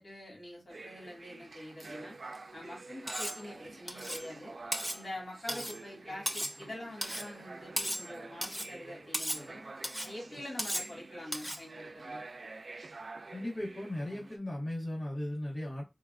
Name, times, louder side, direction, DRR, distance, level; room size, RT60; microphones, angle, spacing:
voice 1, 0.0-2.2 2.5-4.6 4.9-9.6 10.0-12.2, left 1 dB, 80° left, 1.8 m, -45 dB
sound 1, 0.7-14.4, right 3 dB, 85° right, 0.4 m, -48 dB
Cutlery silverware, 3.1-3.4 3.9-4.3 4.7-5.0 5.5-5.8 6.3-6.6 7.0-7.3 7.8-8.1 8.4-8.7 9.1-9.4 9.8-10.1 10.6-10.9 11.3-11.6, equal, ahead, 0.3 m, -36 dB
voice 2, 13.3-15.8, left 1 dB, 60° left, 1.2 m, -37 dB
3.7 x 2.3 x 2.4 m
wide cardioid pair, 70°, 0 cm